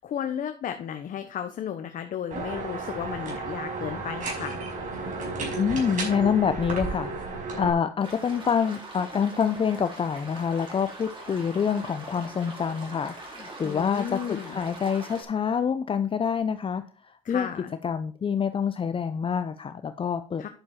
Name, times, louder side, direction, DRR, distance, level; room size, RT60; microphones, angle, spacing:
voice 1, 0.0-4.6 13.6-14.6 17.2-17.7 20.4-20.5, left 9 dB, 55° left, 7 dB, 1.0 m, -34 dB
sound 1, 2.3-7.7, right 3 dB, 50° right, 5.4 m, -33 dB
voice 2, 5.6-17.5 17.8-20.5, left 7 dB, 30° left, 10 dB, 0.7 m, -27 dB
sound 2, 8.0-15.2, right 2 dB, 30° right, 4.5 m, -42 dB
10.5 x 6.7 x 4.3 m, 0.38 s
supercardioid pair, 85°, 17 cm